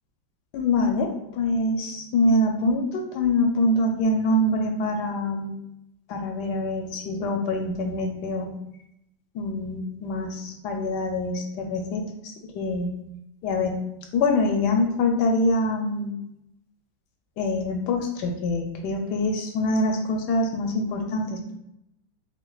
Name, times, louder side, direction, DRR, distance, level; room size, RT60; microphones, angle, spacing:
voice 1, 0.5-5.5 6.1-8.5 9.3-12.9 13.4-13.8 14.1-16.1 17.4-21.5, left 2 dB, 75° left, 3 dB, 1.1 m, -25 dB
5.6 x 2.4 x 2.3 m, 0.81 s
omnidirectional pair, 2.0 m